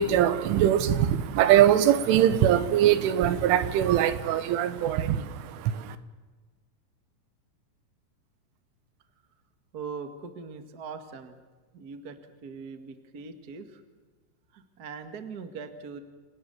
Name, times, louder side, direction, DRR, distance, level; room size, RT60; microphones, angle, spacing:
voice 1, 0.0-6.0, right 10 dB, 90° right, 13 dB, 3.8 m, -22 dB
voice 2, 9.7-11.4 11.7-13.8 14.5-16.0, right 5 dB, 65° right, 8 dB, 0.9 m, -41 dB
29.0 x 19.0 x 7.0 m, 1.3 s
omnidirectional pair, 5.4 m